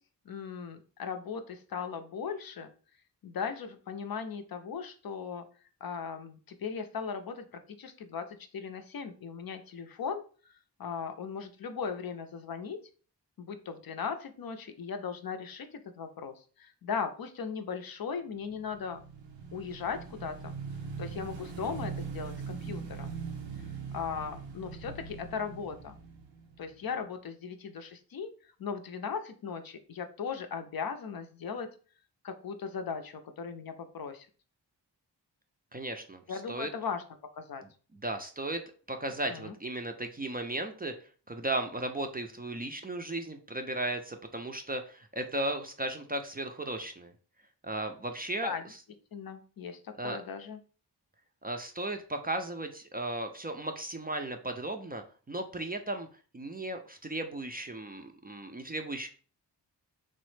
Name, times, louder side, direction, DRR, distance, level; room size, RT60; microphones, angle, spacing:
voice 1, 0.3-2.7 3.2-5.5 5.8-7.5 7.8-10.2 10.8-12.8 13.4-19.0 19.5-20.5 21.0-23.1 23.9-26.0 26.6-28.3 28.6-31.7 32.2-34.3 36.3-37.0 37.3-37.6 39.3-39.5 48.4-48.6 49.1-50.6, left 6 dB, 55° left, 7 dB, 0.5 m, -38 dB
Motorcycle / Engine, 18.5-27.0, right 5 dB, 85° right, 0.6 m, -41 dB
voice 2, 35.7-36.7 38.0-38.6 38.9-40.9 41.3-47.1 47.6-48.5 50.0-50.2 51.4-56.1 56.3-59.1, right 2 dB, 20° right, 5 dB, 0.4 m, -35 dB
3.1 x 2.0 x 3.1 m, 0.39 s
cardioid pair, 40°, 43 cm